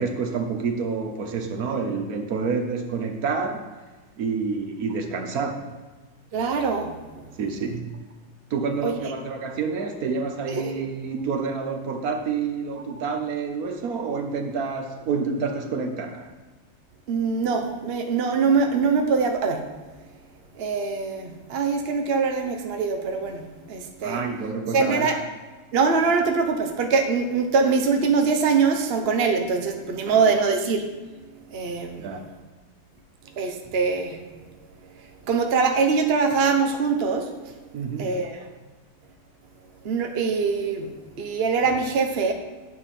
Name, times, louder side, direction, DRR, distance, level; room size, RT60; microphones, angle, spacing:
voice 1, 0.0-3.8 4.2-5.7 7.4-8.0 8.5-16.3 24.0-25.2 30.1-30.3 32.0-32.3 37.7-38.2, right 5 dB, 60° right, 5 dB, 1.0 m, -28 dB
voice 2, 6.3-6.9 8.8-8.9 10.5-10.8 17.1-19.6 20.6-23.4 23.7-24.2 24.7-25.2 25.7-30.8 31.5-32.0 33.4-34.2 35.3-37.3 38.0-38.4 39.8-40.9 41.2-42.3, right 5 dB, 80° right, 4 dB, 0.5 m, -23 dB
9.2 x 7.1 x 4.2 m, 1.3 s
omnidirectional pair, 2.4 m